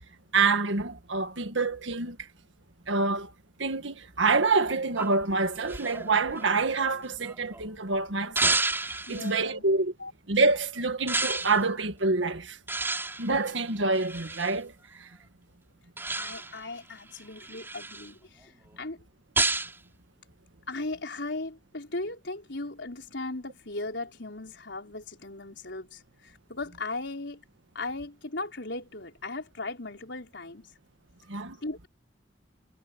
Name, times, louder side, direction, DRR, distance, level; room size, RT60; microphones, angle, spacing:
voice 1, 0.3-2.2 2.9-3.3 3.6-8.6 9.1-9.9 10.3-12.6 13.2-14.7 31.3-31.6, right 3 dB, 80° right, 1.8 m, -26 dB
sound 1, 5.0-7.6 8.4-9.3 11.1-11.6 12.7-14.6 16.0-16.6 17.1-18.1 19.4-19.8, right 3 dB, 10° right, 5.3 m, -31 dB
voice 2, 9.1-9.6 10.0-10.1 16.2-19.0 20.7-27.4 27.7-30.7 31.6-31.9, left 2 dB, 70° left, 4.3 m, -37 dB
head